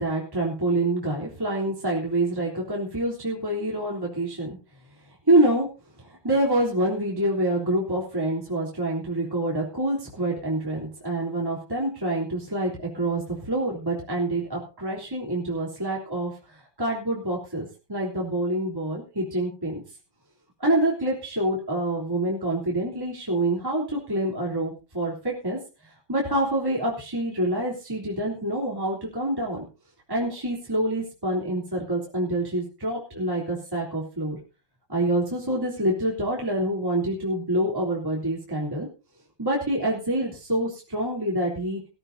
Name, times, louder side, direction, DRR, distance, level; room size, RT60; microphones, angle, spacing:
voice 1, 0.0-4.6 5.3-5.7 6.0-19.8 20.6-25.6 25.8-29.6 30.1-34.4 34.9-38.9 39.4-41.9, right 1 dB, 10° right, -4 dB, 3.4 m, -26 dB
20.5 x 13.5 x 2.7 m, 0.33 s
omnidirectional pair, 2.4 m